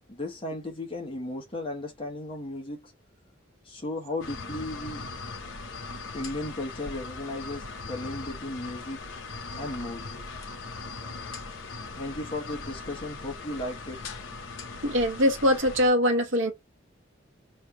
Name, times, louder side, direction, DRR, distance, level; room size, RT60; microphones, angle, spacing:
voice 1, 0.1-2.9 3.6-5.1 6.1-9.0 9.6-10.1 11.9-14.2, left 1 dB, 25° left, 1.1 m, -35 dB
sound 1, 4.2-15.9, left 3 dB, 70° left, 0.8 m, -39 dB
voice 2, 14.8-16.5, equal, 70° right, 1.0 m, -22 dB
3.2 x 2.6 x 4.5 m
head